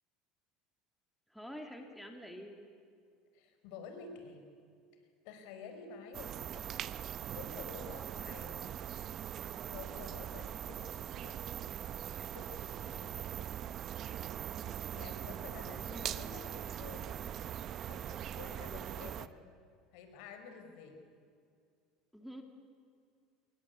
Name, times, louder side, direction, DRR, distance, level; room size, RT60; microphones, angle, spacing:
voice 1, 1.3-2.6 15.6-16.7 18.6-19.0 22.1-22.4, equal, ahead, 3 dB, 2.6 m, -48 dB
voice 2, 3.3-4.5 5.2-6.7 7.3-8.7 9.6-11.5 12.2-13.4 14.9-17.2 17.8-19.4 19.9-21.0, left 5 dB, 70° left, 6 dB, 5.1 m, -50 dB
sound 1, 6.1-19.3, right 10 dB, 40° right, 0.8 m, -41 dB
29.0 x 21.0 x 8.4 m, 2.3 s
supercardioid pair, 135°, 0 cm